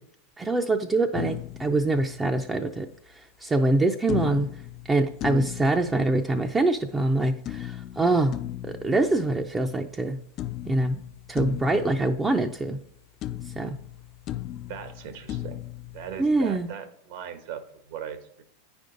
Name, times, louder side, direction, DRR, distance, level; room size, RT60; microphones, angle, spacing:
voice 1, 0.4-2.9 3.4-4.5 4.9-8.4 8.6-10.2 10.7-11.0 11.3-12.8 13.6-13.8 16.2-16.7, right 2 dB, 15° right, 4 dB, 0.5 m, -24 dB
sound 1, 1.1-2.7 4.1-6.7 7.5-10.0 10.4-12.9 13.2-16.7, left 13 dB, 40° left, 0.3 m, -37 dB
voice 2, 14.7-15.6 15.9-18.4, right 8 dB, 65° right, 9 dB, 1.2 m, -39 dB
9.0 x 5.2 x 3.8 m, 0.69 s
supercardioid pair, 125°, 0 cm